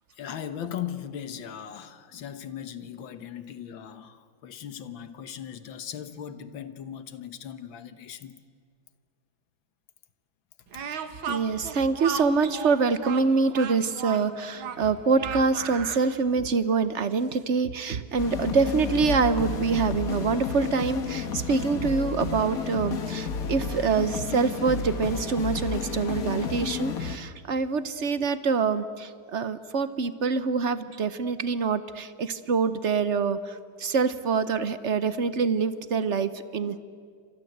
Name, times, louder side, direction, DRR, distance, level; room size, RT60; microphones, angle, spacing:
voice 1, 0.2-8.3 10.7-10.8, left 9 dB, 75° left, 1.9 m, -38 dB
Speech, 10.7-16.1, right 6 dB, 80° right, 2.2 m, -35 dB
voice 2, 11.3-36.8, right 5 dB, 50° right, 0.9 m, -25 dB
sound 1, 18.2-27.2, left 5 dB, 50° left, 1.7 m, -31 dB
29.0 x 25.5 x 8.0 m
omnidirectional pair, 2.2 m